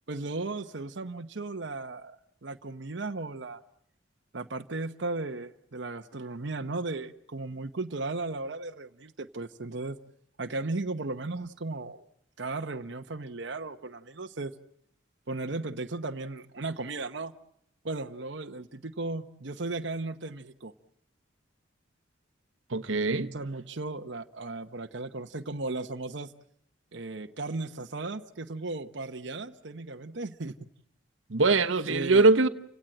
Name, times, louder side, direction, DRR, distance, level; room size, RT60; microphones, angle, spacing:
voice 1, 0.1-3.6 4.3-10.0 10.4-12.0 12.4-14.5 15.3-17.3 17.8-20.7 23.3-26.3 26.9-30.6 31.9-32.3, right 3 dB, 65° right, 1.0 m, -36 dB
voice 2, 22.7-23.3 31.3-32.5, right 3 dB, 85° right, 1.1 m, -22 dB
30.0 x 17.0 x 8.7 m
head